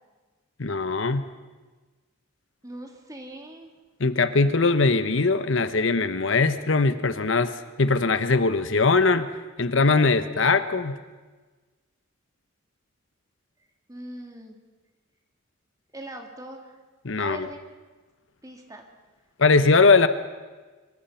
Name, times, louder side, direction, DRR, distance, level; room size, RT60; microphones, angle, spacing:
voice 1, 0.6-1.2 4.0-11.0 17.0-17.5 19.4-20.1, left 3 dB, 65° left, 11 dB, 1.0 m, -21 dB
voice 2, 2.6-3.7 13.9-14.6 15.9-16.8 17.2-17.6 18.4-18.9, right 1 dB, 15° right, 3 dB, 2.6 m, -40 dB
24.5 x 23.0 x 5.7 m, 1.3 s
head